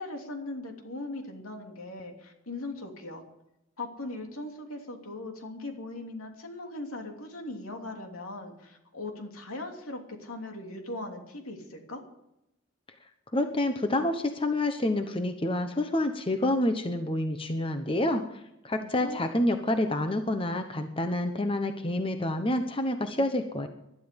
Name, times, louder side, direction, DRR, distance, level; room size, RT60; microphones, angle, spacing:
voice 1, 0.0-3.2 3.8-12.0 18.8-19.2, left 2 dB, 80° left, 3 dB, 3.0 m, -39 dB
voice 2, 13.3-18.2 18.6-23.7, left 1 dB, 25° left, 7 dB, 1.0 m, -28 dB
20.5 x 12.0 x 5.3 m, 0.85 s
head